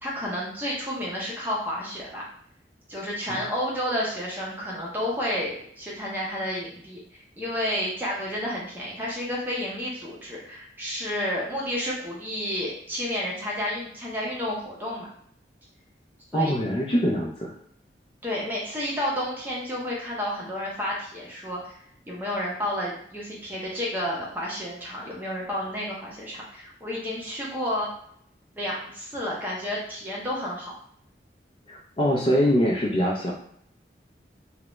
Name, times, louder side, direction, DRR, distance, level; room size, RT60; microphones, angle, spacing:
voice 1, 0.0-2.2 2.9-7.0 7.4-15.1 16.3-16.6 18.2-21.7 22.1-27.9 28.5-30.7, left 1 dB, 10° right, -5 dB, 0.6 m, -31 dB
voice 2, 16.3-17.5 31.7-33.3, equal, 30° left, -3 dB, 0.4 m, -23 dB
2.3 x 2.0 x 3.0 m, 0.66 s
head